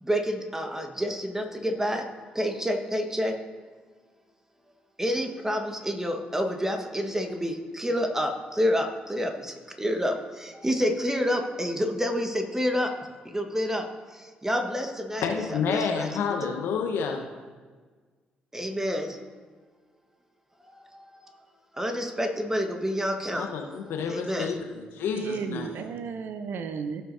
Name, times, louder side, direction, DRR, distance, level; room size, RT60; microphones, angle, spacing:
voice 1, 0.0-2.1 2.3-3.3 5.0-12.9 13.2-16.1 18.5-19.2 20.9-21.3 21.7-23.5 24.1-24.5, equal, 10° right, 5 dB, 1.5 m, -28 dB
voice 2, 15.2-17.2 23.3-25.7, left 6 dB, 60° left, 3 dB, 1.1 m, -29 dB
voice 3, 25.1-27.0, right 6 dB, 55° right, 9 dB, 0.7 m, -34 dB
16.5 x 6.0 x 2.7 m, 1.5 s
figure-of-eight pair, 45°, 4 cm